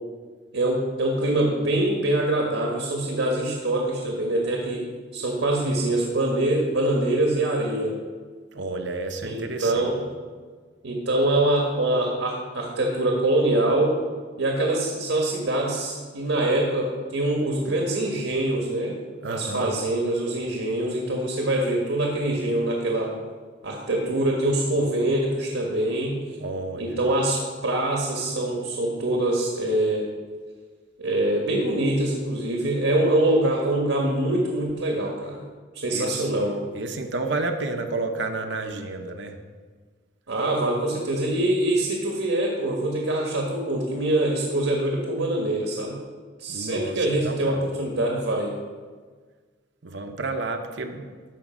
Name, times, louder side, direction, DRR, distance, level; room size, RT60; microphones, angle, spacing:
voice 1, 0.5-7.9 9.2-10.0 10.8-14.0 14.4-19.0 19.2-23.1 23.6-26.2 26.8-30.1 31.0-35.4 35.8-36.6 40.3-46.0 46.4-48.5, right 1 dB, 80° right, 0 dB, 1.5 m, -24 dB
voice 2, 8.5-10.0 19.2-19.7 26.4-27.0 35.9-36.3 36.7-39.4 46.5-47.8 49.8-51.1, right 3 dB, 60° right, 5 dB, 0.8 m, -31 dB
13.5 x 5.1 x 5.1 m, 1.5 s
head